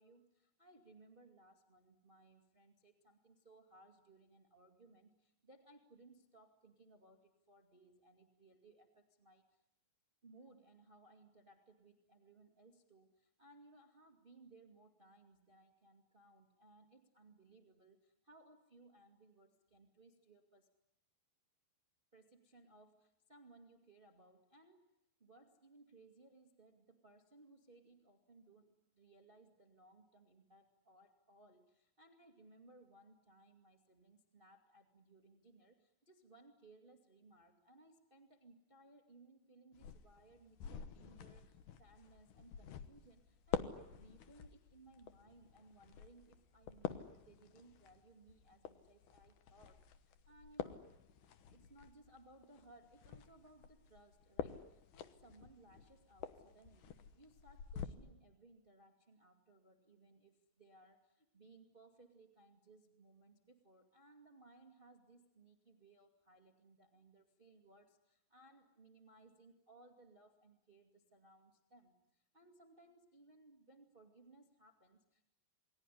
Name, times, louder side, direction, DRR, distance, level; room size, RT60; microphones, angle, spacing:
voice 1, 0.0-9.6 10.2-20.7 22.1-24.9 25.2-50.8 51.5-75.2, right 2 dB, 85° right, 4 dB, 0.4 m, -64 dB
sound 1, 39.7-57.9, left 9 dB, 70° left, 2.0 m, -48 dB
28.5 x 20.5 x 10.0 m, 0.84 s
omnidirectional pair, 5.1 m